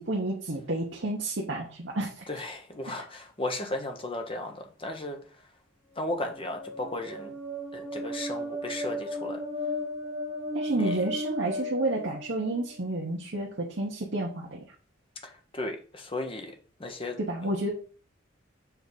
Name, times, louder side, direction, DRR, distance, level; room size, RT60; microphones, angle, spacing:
voice 1, 0.0-2.2 10.5-14.6 17.2-17.7, right 2 dB, 60° right, -3 dB, 1.1 m, -30 dB
voice 2, 2.3-5.2 6.0-7.3 7.7-9.4 10.8-10.9 15.2-16.5 16.8-17.5, left 2 dB, 25° left, 4 dB, 1.0 m, -35 dB
sound 1, 5.9-12.8, left 1 dB, 10° right, 1.6 m, -35 dB
7.0 x 3.6 x 4.1 m, 0.39 s
head